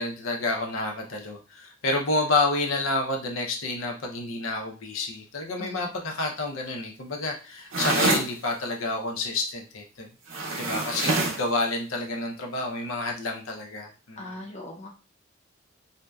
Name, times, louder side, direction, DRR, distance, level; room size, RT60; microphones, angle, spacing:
voice 1, 0.0-10.1 10.6-14.4, left 2 dB, 90° left, 1 dB, 0.6 m, -29 dB
voice 2, 5.6-5.9 14.2-14.9, left 1 dB, 35° left, -1 dB, 0.5 m, -39 dB
sound 1, 7.7-8.3 10.3-11.5, right 2 dB, 90° right, 0.6 m, -25 dB
2.6 x 2.1 x 2.2 m, 0.33 s
head